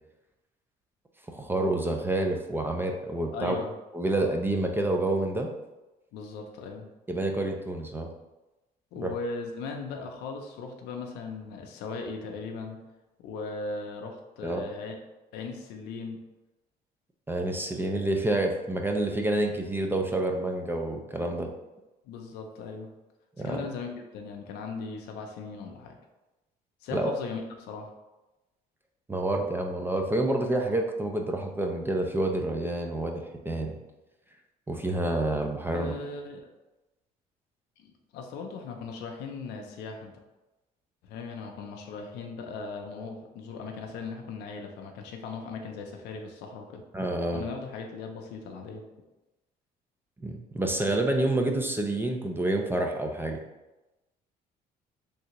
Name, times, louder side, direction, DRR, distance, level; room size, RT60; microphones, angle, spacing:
voice 1, 1.3-3.6 3.9-5.5 7.1-8.1 9.0-9.1 14.4-14.6 17.3-21.5 23.4-23.7 26.9-27.1 29.1-33.8 34.7-35.9 46.9-47.4 50.2-53.4, right 2 dB, 15° right, 3 dB, 0.3 m, -28 dB
voice 2, 3.3-3.7 6.1-6.9 8.9-12.8 13.2-15.0 15.3-16.2 22.0-22.9 23.4-26.0 26.8-27.9 35.7-36.5 37.8-40.1 41.0-46.8 47.3-48.9, left 4 dB, 85° left, 3 dB, 0.5 m, -38 dB
3.2 x 2.7 x 2.9 m, 1.0 s
cardioid pair, 110°, 17 cm